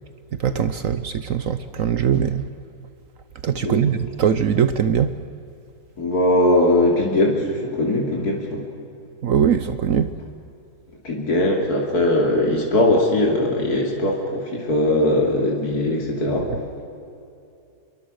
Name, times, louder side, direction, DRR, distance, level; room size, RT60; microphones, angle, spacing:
voice 1, 0.4-2.4 3.4-5.1 9.2-10.1, right 8 dB, 60° right, 11 dB, 1.1 m, -21 dB
voice 2, 6.0-8.6 11.0-16.5, left 1 dB, 70° left, 0 dB, 3.4 m, -20 dB
27.0 x 22.5 x 6.4 m, 2.6 s
omnidirectional pair, 1.7 m